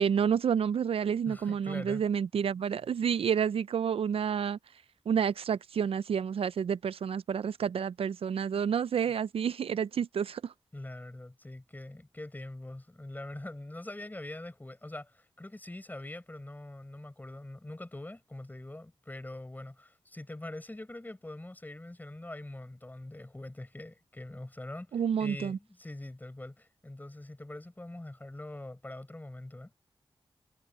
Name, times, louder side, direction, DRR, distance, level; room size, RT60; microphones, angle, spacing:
voice 1, 0.0-4.6 5.1-10.5 24.9-25.6, right 7 dB, 75° right, 0.4 m, -29 dB
voice 2, 1.3-2.0 10.7-29.7, left 1 dB, 20° left, 4.8 m, -43 dB
wide cardioid pair, 75°, 10 cm